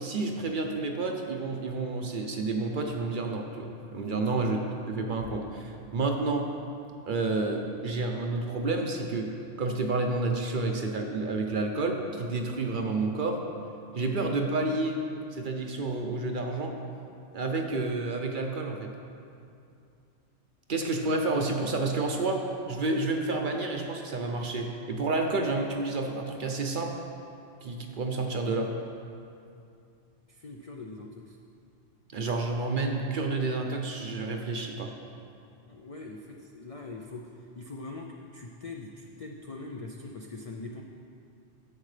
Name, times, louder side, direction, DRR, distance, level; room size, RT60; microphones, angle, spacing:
voice 1, 0.0-4.6 4.9-6.5 7.1-9.3 9.6-13.4 13.9-15.0 15.3-16.8 17.3-18.9 20.7-27.0 27.6-28.7 32.1-34.9, right 3 dB, 50° right, 3 dB, 0.7 m, -30 dB
voice 2, 30.3-31.4 35.7-40.8, left 3 dB, 55° left, 1 dB, 0.4 m, -42 dB
11.0 x 7.5 x 3.3 m, 2.5 s
omnidirectional pair, 1.2 m